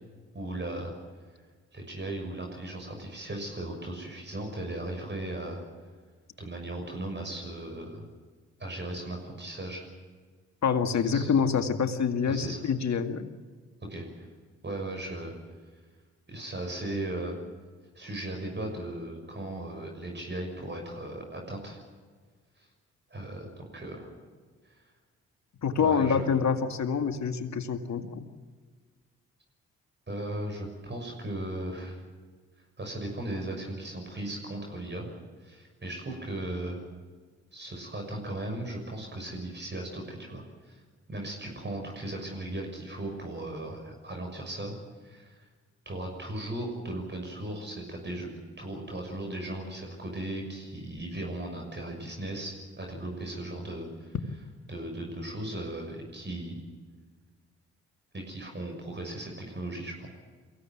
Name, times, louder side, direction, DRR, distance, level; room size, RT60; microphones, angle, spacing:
voice 1, 0.3-0.9 1.7-5.6 6.4-8.1 8.6-9.8 11.1-11.3 12.3-12.6 13.9-14.3 14.6-15.3 16.3-17.4 17.9-21.8 23.1-24.1 24.7-24.8 25.8-26.2 30.1-32.0 32.8-35.1 35.4-36.8 37.5-40.8 41.1-44.7 45.0-45.4 45.8-54.2 54.7-56.6 58.1-60.1, right 1 dB, 30° right, 2 dB, 6.6 m, -37 dB
voice 2, 10.6-13.3 25.6-28.3, left 6 dB, 55° left, 7 dB, 2.2 m, -26 dB
23.0 x 16.5 x 9.3 m, 1.5 s
hypercardioid pair, 45°, 34 cm